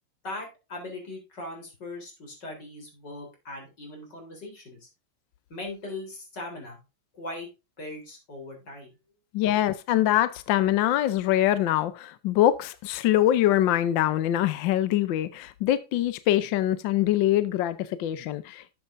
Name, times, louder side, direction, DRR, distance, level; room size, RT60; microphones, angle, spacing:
voice 1, 0.2-4.9 5.5-6.8 7.1-7.5 7.8-8.9, left 2 dB, 50° left, 4.3 m, -39 dB
voice 2, 9.3-18.7, left 13 dB, 70° left, 1.3 m, -24 dB
12.5 x 8.0 x 2.6 m
omnidirectional pair, 2.4 m